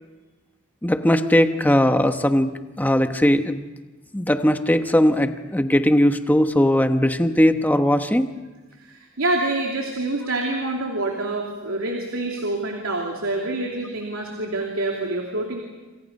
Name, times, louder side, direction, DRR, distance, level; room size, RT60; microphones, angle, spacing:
voice 1, 0.8-3.6 4.1-8.3, equal, 10° left, 8 dB, 1.1 m, -19 dB
voice 2, 8.8-15.6, right 2 dB, 85° right, 1 dB, 2.8 m, -26 dB
27.5 x 27.0 x 5.4 m, 1.2 s
head